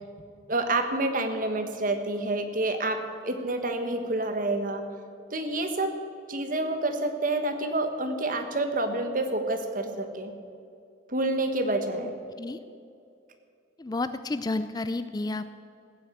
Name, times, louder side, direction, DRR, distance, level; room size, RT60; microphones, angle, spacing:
voice 1, 0.5-4.8 5.3-5.9 6.3-10.3 11.1-12.1, right 2 dB, 45° right, 6 dB, 1.4 m, -28 dB
voice 2, 13.8-15.5, left 2 dB, 20° left, 12 dB, 0.3 m, -31 dB
15.5 x 9.4 x 8.0 m, 2.4 s
head